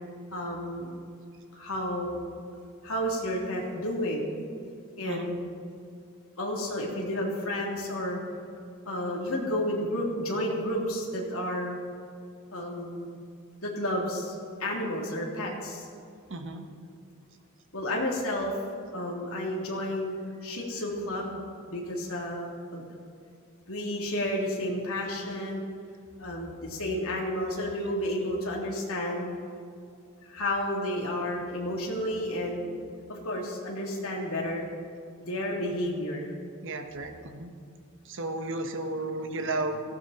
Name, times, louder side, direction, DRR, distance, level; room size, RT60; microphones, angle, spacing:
voice 1, 0.3-0.9 1.5-2.2 2.8-4.3 5.0-5.4 6.4-8.2 8.8-11.8 12.5-13.1 13.6-14.3 14.6-15.9 17.7-18.6 18.9-22.8 23.7-25.6 26.2-29.3 30.3-32.7 33.1-34.7 35.2-36.3, left 1 dB, 70° left, -2 dB, 3.2 m, -31 dB
voice 2, 16.3-16.6 36.6-37.5 38.0-39.8, right 2 dB, 60° right, 6 dB, 1.4 m, -33 dB
18.0 x 15.5 x 4.3 m, 2.4 s
head